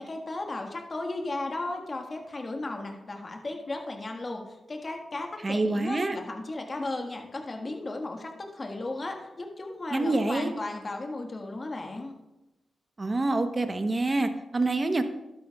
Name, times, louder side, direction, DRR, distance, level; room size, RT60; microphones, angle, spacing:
voice 1, 0.0-12.1, left 2 dB, 40° left, 3 dB, 1.6 m, -35 dB
voice 2, 5.4-6.2 9.9-10.5 13.0-15.0, right 2 dB, 35° right, 8 dB, 0.9 m, -26 dB
12.0 x 9.1 x 2.4 m, 0.99 s
cardioid pair, 60°, 0 cm